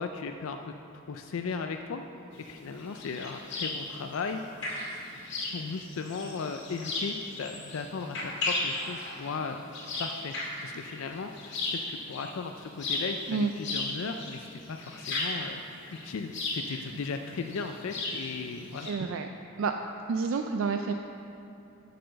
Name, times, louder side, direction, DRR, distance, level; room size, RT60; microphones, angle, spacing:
voice 1, 0.0-2.0 2.4-4.4 5.5-9.6 10.0-10.3 10.6-15.6 15.9-18.9, left 5 dB, 70° left, 5 dB, 0.4 m, -36 dB
sound 1, 2.3-18.9, left 2 dB, 55° left, 1.9 m, -36 dB
voice 2, 18.8-19.3 19.6-19.7 20.1-20.9, right 4 dB, 70° right, 5 dB, 0.4 m, -29 dB
7.8 x 6.8 x 6.4 m, 2.7 s
head